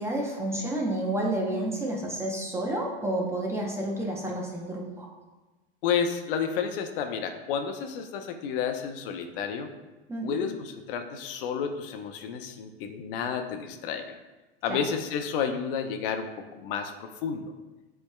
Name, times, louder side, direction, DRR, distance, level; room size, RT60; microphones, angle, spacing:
voice 1, 0.0-5.1 10.1-10.4 14.7-14.8, right 1 dB, 10° right, -1 dB, 0.7 m, -30 dB
voice 2, 5.8-9.7 10.2-14.2 14.6-17.5, left 7 dB, 60° left, 6 dB, 0.6 m, -31 dB
6.8 x 3.3 x 2.2 m, 1.1 s
hypercardioid pair, 120°, 31 cm